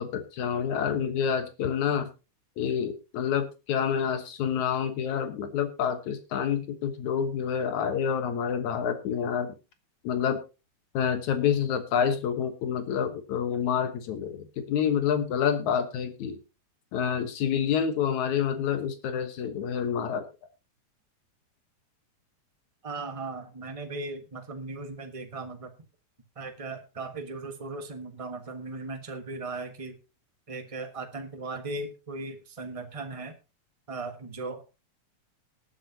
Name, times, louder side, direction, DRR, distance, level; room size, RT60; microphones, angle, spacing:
voice 1, 0.0-2.1 2.6-9.5 10.0-10.4 10.9-16.4 16.9-20.2, left 8 dB, 80° left, 9 dB, 2.7 m, -28 dB
voice 2, 22.8-25.7 26.4-30.0 30.5-33.3 33.9-34.6, right 3 dB, 55° right, 5 dB, 0.3 m, -37 dB
19.5 x 10.0 x 2.8 m, 0.29 s
omnidirectional pair, 3.3 m